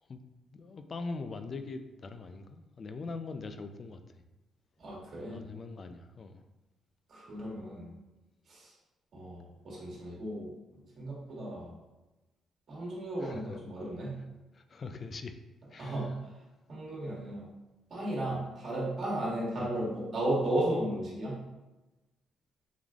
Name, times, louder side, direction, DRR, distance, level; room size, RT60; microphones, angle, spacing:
voice 1, 0.5-4.2 5.3-6.4 13.2-13.6 14.5-15.4 15.7-16.2 19.6-19.7, left 3 dB, 45° left, 8 dB, 0.3 m, -42 dB
voice 2, 4.8-5.4 7.1-7.9 8.5-8.7 9.1-10.5 11.0-11.7 12.7-14.1 15.8-16.1 16.7-17.4 17.9-21.3, right 1 dB, 55° right, -5 dB, 1.5 m, -34 dB
3.8 x 3.1 x 2.4 m, 1.1 s
cardioid pair, 90°, 0 cm